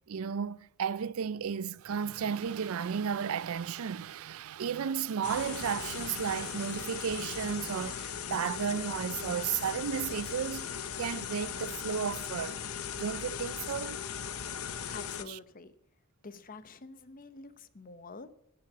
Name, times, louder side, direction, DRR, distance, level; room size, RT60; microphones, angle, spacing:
voice 1, 0.1-12.6 12.9-14.0 15.3-15.4, right 7 dB, 75° right, 0.4 m, -33 dB
sound 1, 5.2-15.2, left 7 dB, 80° left, 0.9 m, -38 dB
voice 2, 14.6-15.7 16.2-18.3, left 3 dB, 40° left, 0.9 m, -48 dB
10.5 x 10.0 x 8.0 m
head